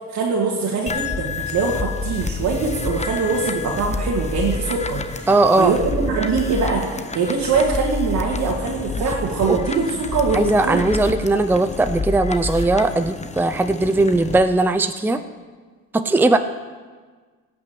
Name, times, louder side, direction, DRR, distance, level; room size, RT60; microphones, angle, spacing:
voice 1, 0.1-5.3 5.6-5.8 6.0-10.8, right 4 dB, 75° right, -4 dB, 2.3 m, -22 dB
sound 1, 0.9-14.4, left 3 dB, 20° left, 0.9 m, -29 dB
voice 2, 5.3-5.7 9.5-9.6 10.3-15.2 15.9-16.4, right 2 dB, 5° right, 9 dB, 0.6 m, -18 dB
17.5 x 6.0 x 7.9 m, 1.5 s
cardioid pair, 90°, 30 cm